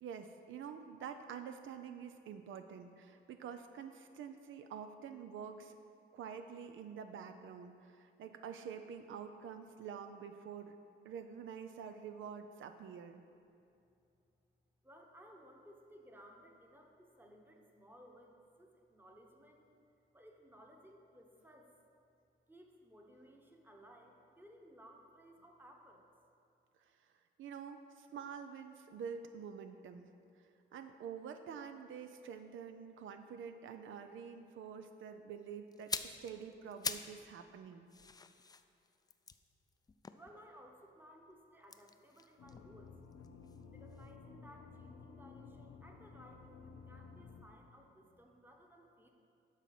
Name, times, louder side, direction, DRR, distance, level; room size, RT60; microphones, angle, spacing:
voice 1, 0.0-5.8 6.1-10.8 11.0-13.2 26.8-26.9 27.4-30.1 30.4-37.9, right 7 dB, 80° right, 8 dB, 0.5 m, -47 dB
voice 2, 14.8-19.6 20.1-21.7 22.5-26.0 40.1-42.9 43.7-49.1, equal, 10° right, 1 dB, 1.1 m, -59 dB
sound 1, 35.7-37.2 37.5-40.8 41.6-43.6 43.9-44.1, left 4 dB, 20° left, 0.4 m, -45 dB
sound 2, 42.4-47.5, left 5 dB, 75° left, 0.9 m, -54 dB
12.0 x 4.1 x 5.9 m, 2.6 s
cardioid pair, 95°, 20 cm